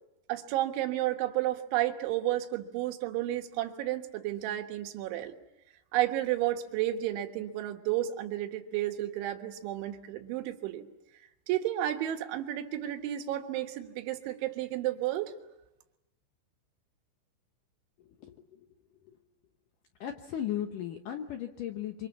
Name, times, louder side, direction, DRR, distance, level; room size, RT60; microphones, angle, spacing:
voice 1, 0.3-5.4 5.9-10.9 11.5-15.4, right 13 dB, 80° right, 6 dB, 3.8 m, -32 dB
voice 2, 18.0-18.6 19.0-19.2 20.0-22.1, left 10 dB, 75° left, 5 dB, 2.0 m, -37 dB
25.5 x 25.5 x 7.3 m, 0.95 s
omnidirectional pair, 5.4 m